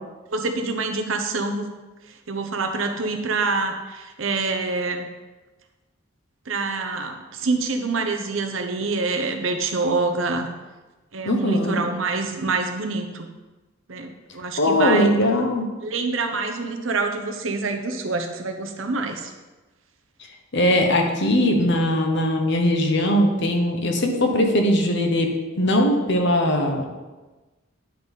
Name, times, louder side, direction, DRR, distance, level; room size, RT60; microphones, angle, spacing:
voice 1, 0.3-1.7 2.3-5.1 6.5-10.5 11.1-13.3 13.9-15.1 15.8-19.3, right 3 dB, 75° right, 5 dB, 0.9 m, -26 dB
voice 2, 11.2-11.8 14.6-15.6 20.5-26.8, left 1 dB, 60° left, 3 dB, 1.2 m, -20 dB
10.0 x 4.1 x 5.3 m, 1.2 s
head